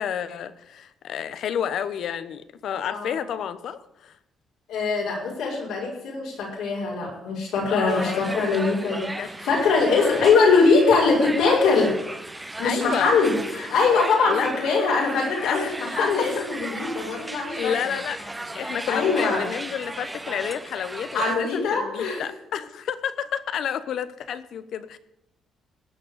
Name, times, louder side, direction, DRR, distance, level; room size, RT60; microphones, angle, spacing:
voice 1, 0.0-4.2 7.7-8.4 9.2-9.3 12.6-13.1 14.3-14.5 15.4-16.5 17.6-18.2 18.5-25.0, left 8 dB, 70° left, 13 dB, 0.9 m, -30 dB
voice 2, 4.7-11.9 12.6-17.7 18.9-19.5 21.1-22.2, left 4 dB, 85° left, -3 dB, 5.8 m, -22 dB
sound 1, 7.9-21.4, right 2 dB, 15° right, 1.0 m, -36 dB
17.5 x 6.2 x 8.0 m, 0.84 s
cardioid pair, 90°, 0 cm